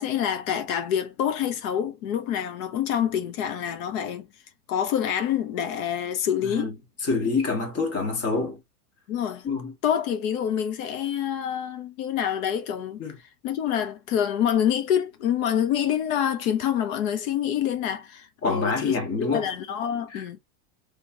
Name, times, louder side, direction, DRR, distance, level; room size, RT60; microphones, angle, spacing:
voice 1, 0.0-4.3 4.7-6.7 9.1-9.5 9.8-13.0 13.4-20.4, left 9 dB, 65° left, 0.9 m, -26 dB
voice 2, 6.4-6.8 7.0-8.6 9.4-9.7 13.0-13.1 18.4-19.4 20.1-20.2, left 4 dB, 30° left, 1.7 m, -26 dB
3.4 x 3.0 x 2.8 m
supercardioid pair, 130°, 45 cm